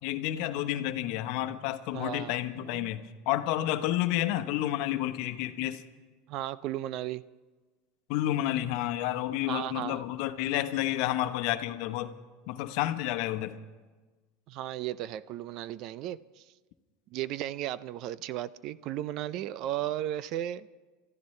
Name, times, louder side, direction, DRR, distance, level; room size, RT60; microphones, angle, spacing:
voice 1, 0.0-5.8 8.1-12.1 12.5-13.6, left 14 dB, 65° left, 9 dB, 1.0 m, -30 dB
voice 2, 1.9-2.9 6.3-7.2 9.5-10.0 14.5-16.5 17.1-20.7, right 13 dB, 55° right, 18 dB, 0.5 m, -35 dB
28.5 x 14.5 x 3.3 m, 1.3 s
supercardioid pair, 105°, 0 cm